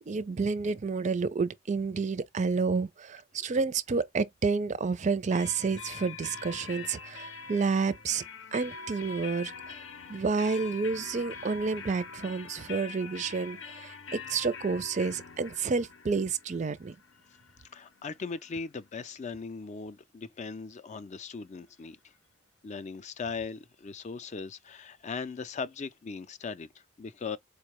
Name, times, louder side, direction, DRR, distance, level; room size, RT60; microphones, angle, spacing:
voice 1, 0.1-8.2 8.5-9.8 10.1-16.9, right 4 dB, 40° right, 0.4 m, -30 dB
sound 1, 5.3-18.9, left 5 dB, 75° left, 0.7 m, -44 dB
voice 2, 17.7-22.1 22.6-27.4, left 4 dB, 35° left, 0.4 m, -39 dB
4.5 x 2.2 x 3.0 m
head